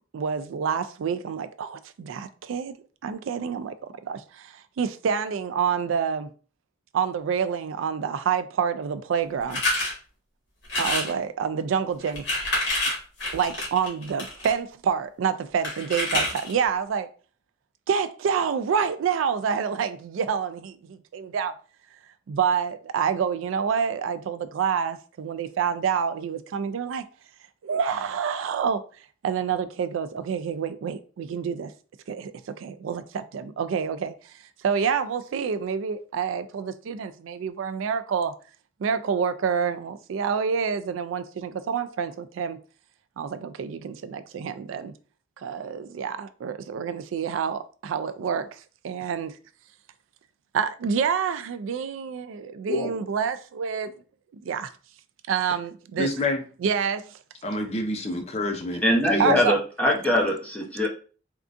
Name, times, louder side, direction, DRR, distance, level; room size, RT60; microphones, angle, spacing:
voice 1, 0.1-2.7 3.0-3.7 4.0-6.3 6.9-9.6 10.8-12.3 13.3-17.1 17.9-21.5 22.3-27.0 27.6-28.8 29.2-31.7 32.1-34.3 34.6-38.3 38.8-42.6 43.2-44.9 45.4-49.4 50.5-53.9 54.3-54.7 55.3-56.3 56.6-57.2 59.2-59.6, right 6 dB, 85° right, 0.3 m, -27 dB
sound 1, 9.5-9.9 10.6-11.1 12.0-14.5 15.6-16.6, left 2 dB, 65° left, 1.5 m, -27 dB
voice 2, 56.0-56.4 57.4-58.8 59.1-59.3, left 2 dB, 35° left, 0.5 m, -28 dB
voice 3, 58.8-60.9, left 1 dB, 5° left, 0.8 m, -22 dB
3.6 x 2.3 x 2.5 m
head